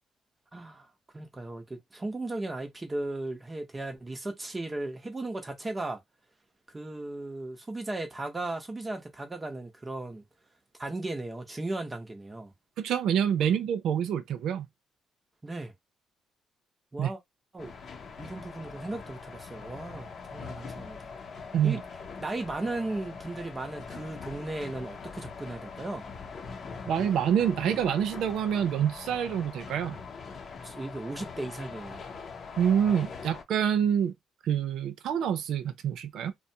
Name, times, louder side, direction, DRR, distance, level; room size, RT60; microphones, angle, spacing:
voice 1, 0.5-0.9 1.1-6.0 6.7-10.2 10.8-12.5 15.4-15.7 16.9-17.2 17.5-17.7 18.2-21.0 21.6-21.8 22.2-26.1 30.6-32.0, right 2 dB, 20° right, 0.8 m, -36 dB
voice 2, 12.8-14.7 17.0-17.1 21.5-21.8 26.9-30.0 32.6-34.1 34.4-36.3, right 8 dB, 75° right, 0.4 m, -27 dB
sound 1, 17.6-33.4, left 5 dB, 50° left, 0.6 m, -42 dB
2.4 x 2.2 x 2.7 m
cardioid pair, 90°, 0 cm